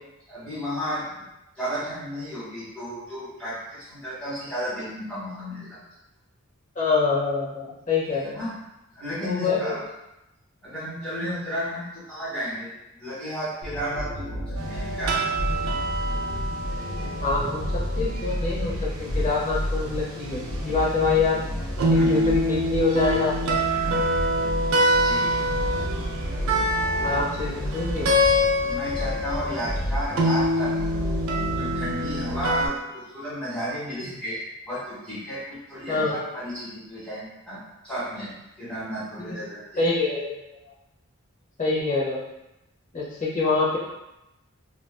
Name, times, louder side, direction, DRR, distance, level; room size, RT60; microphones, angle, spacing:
voice 1, 0.3-1.2 1.6-5.8 8.1-8.5 8.9-9.8 10.6-12.7 13.0-15.2 21.9-22.3 24.9-25.5 27.0-27.2 28.7-31.0 31.5-39.8, equal, 5° left, -11 dB, 1.1 m, -33 dB
voice 2, 6.8-8.4 9.2-9.8 17.2-21.5 21.9-23.6 26.3-26.4 27.0-28.1 35.9-36.2 39.2-39.4 39.8-40.2 41.6-42.2 42.9-43.8, left 4 dB, 35° left, -6 dB, 0.7 m, -25 dB
sound 1, 13.6-32.1, equal, 75° left, 0.5 m, -31 dB
sound 2, 14.6-32.7, equal, 70° right, 0.4 m, -26 dB
2.5 x 2.3 x 2.2 m, 0.91 s
head